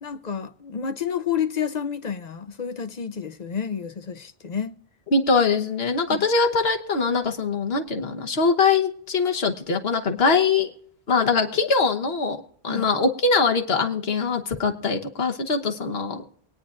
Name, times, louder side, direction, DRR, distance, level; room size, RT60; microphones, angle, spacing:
voice 1, 0.0-4.8 6.1-6.3 12.7-12.9, left 7 dB, 50° left, 0.6 m, -30 dB
voice 2, 5.1-10.7 11.1-12.4 12.6-16.2, left 4 dB, 75° left, 1.4 m, -22 dB
23.5 x 9.6 x 2.5 m
omnidirectional pair, 1.0 m